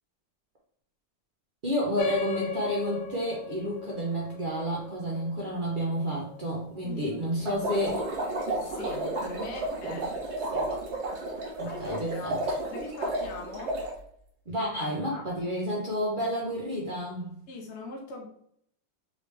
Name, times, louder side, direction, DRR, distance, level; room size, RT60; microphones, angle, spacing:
voice 1, 1.6-8.0 9.8-10.0 11.6-12.6 14.5-17.3, equal, 80° right, -4 dB, 0.4 m, -30 dB
sound 1, 2.0-6.9, left 8 dB, 80° left, 1.3 m, -37 dB
voice 2, 6.7-7.6 8.6-10.1 10.4-10.7 11.6-12.4 12.7-13.8 15.1-15.2 17.5-18.3, left 2 dB, 60° left, 0 dB, 0.7 m, -41 dB
sound 2, 7.4-13.9, right 2 dB, 45° right, 1.1 m, -32 dB
3.8 x 3.3 x 3.2 m, 0.71 s
omnidirectional pair, 2.1 m